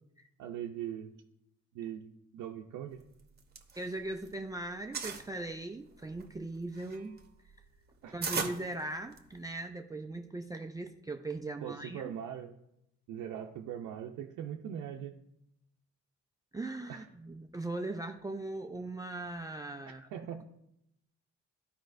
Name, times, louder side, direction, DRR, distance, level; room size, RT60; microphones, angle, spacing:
voice 1, 0.4-1.2 1.7-3.0 8.0-8.2 11.6-12.5 13.1-15.2 16.9-17.1 20.1-20.4, right 9 dB, 85° right, 1 dB, 0.6 m, -41 dB
sound 1, 3.2-4.4 4.6-5.3 5.9-9.5, right 5 dB, 35° right, 1.0 m, -38 dB
voice 2, 3.8-7.2 8.1-12.1 16.5-20.1, right 2 dB, 10° right, 4 dB, 0.4 m, -39 dB
12.0 x 5.1 x 2.6 m, 0.81 s
cardioid pair, 90°, 30 cm